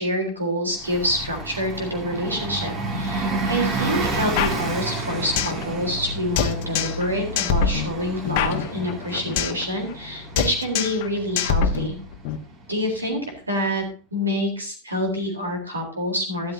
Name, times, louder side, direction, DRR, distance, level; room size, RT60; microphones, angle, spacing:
voice 1, 0.0-12.0 12.7-13.2 13.5-13.8 14.1-16.5, equal, 80° right, 3 dB, 3.9 m, -27 dB
Bus, 0.8-13.1, right 2 dB, 30° right, 2.7 m, -31 dB
sound 1, 4.4-5.6 5.9-6.0 6.4-7.1 7.4-9.6 9.9-10.1 10.4-11.1 11.4-12.4, left 7 dB, 45° left, 1.1 m, -24 dB
12.5 x 12.5 x 2.8 m, 0.37 s
figure-of-eight pair, 90°, 0 cm